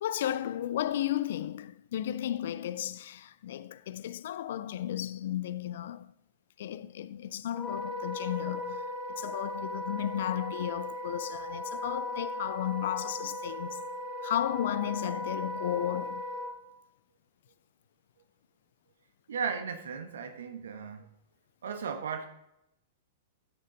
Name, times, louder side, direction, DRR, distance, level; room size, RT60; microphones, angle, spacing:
voice 1, 0.0-6.1 6.6-13.8 14.2-16.2, left 11 dB, 55° left, 0.4 m, -34 dB
Wind instrument woodwind instrument, 7.5-16.5, left 1 dB, 30° left, 2.2 m, -37 dB
voice 2, 19.3-21.1 21.6-22.3, right 6 dB, 60° right, 1.3 m, -35 dB
13.5 x 6.5 x 3.7 m
figure-of-eight pair, 100°, 0 cm